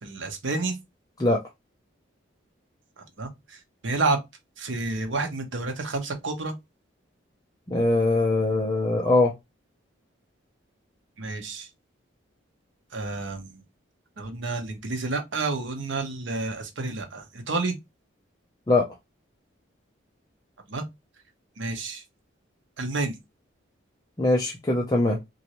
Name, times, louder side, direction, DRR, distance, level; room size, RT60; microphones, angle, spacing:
voice 1, 0.0-0.8 3.0-4.2 4.6-6.5 11.2-11.7 12.9-13.6 14.2-17.8 20.7-20.8 21.6-22.0 22.8-23.2, right 3 dB, 65° right, 0.8 m, -30 dB
voice 2, 7.7-9.3 18.7-18.9 24.2-25.2, left 2 dB, 20° left, 0.4 m, -22 dB
3.0 x 2.6 x 2.8 m
head